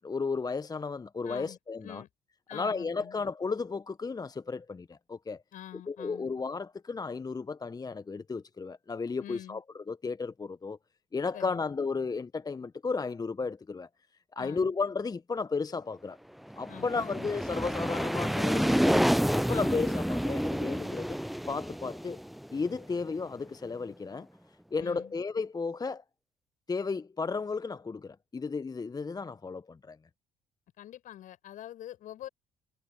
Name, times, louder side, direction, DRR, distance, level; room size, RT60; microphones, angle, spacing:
voice 1, 0.0-2.0 2.5-5.4 5.9-9.6 9.9-10.8 11.1-13.9 14.3-16.2 16.6-19.1 19.3-21.2 21.5-22.2 22.5-24.3 24.7-26.0 26.7-30.0, left 4 dB, 25° left, 1.2 m, -34 dB
voice 2, 1.2-2.1 2.5-3.2 5.5-6.3 9.2-9.6 11.3-11.7 14.4-14.7 16.7-17.3 19.5-19.9 24.8-25.1 30.8-32.3, left 12 dB, 55° left, 7.5 m, -46 dB
sound 1, 16.5-23.2, equal, ahead, 0.5 m, -29 dB
figure-of-eight pair, 50°, 16 cm